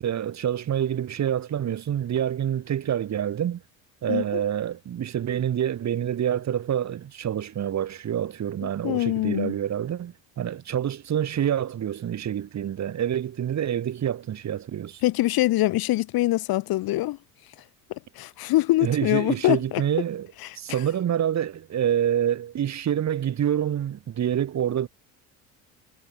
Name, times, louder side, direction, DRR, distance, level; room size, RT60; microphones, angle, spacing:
voice 1, 0.0-3.6 4.0-15.0 18.8-20.3 20.5-24.9, right 10 dB, 45° right, 1.8 m, -27 dB
voice 2, 4.1-4.4 8.6-9.6 15.0-17.2 18.1-19.8, left 17 dB, 60° left, 1.8 m, -24 dB
supercardioid pair, 80°, 40 cm